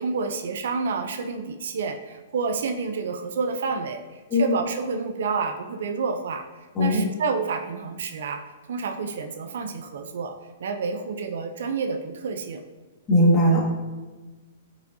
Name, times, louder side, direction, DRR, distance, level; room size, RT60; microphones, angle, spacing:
voice 1, 0.0-6.5 6.8-10.3 10.6-12.6, right 5 dB, 75° right, 7 dB, 0.6 m, -29 dB
voice 2, 13.1-13.6, equal, 20° left, -4 dB, 1.8 m, -18 dB
8.1 x 5.1 x 2.7 m, 1.2 s
hypercardioid pair, 150°, 0 cm